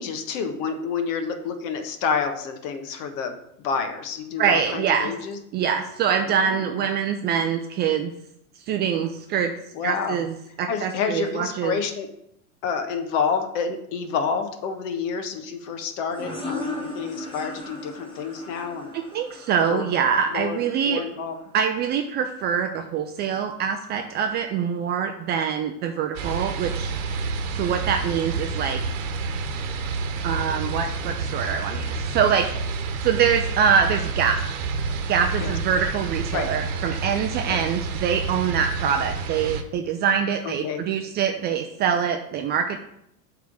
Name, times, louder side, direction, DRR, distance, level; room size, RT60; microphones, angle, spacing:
voice 1, 0.0-5.4 6.3-6.8 9.7-10.2 10.7-12.1 12.6-18.9 19.7-19.9 20.3-20.6 20.8-21.3 35.4-35.5 36.3-36.5 37.5-37.6 40.4-40.8, left 6 dB, 60° left, 7 dB, 1.3 m, -29 dB
voice 2, 4.4-5.1 5.5-8.1 8.6-9.5 9.8-11.8 18.9-21.0 21.5-26.9 27.5-28.8 30.2-32.5 33.0-34.4 35.1-42.8, right 7 dB, 25° right, 6 dB, 0.3 m, -24 dB
sound 1, 16.1-21.5, left 1 dB, 10° left, 1.5 m, -38 dB
sound 2, 26.1-39.6, right 4 dB, 60° right, 1.1 m, -29 dB
7.4 x 3.7 x 6.1 m, 0.76 s
hypercardioid pair, 110°, 44 cm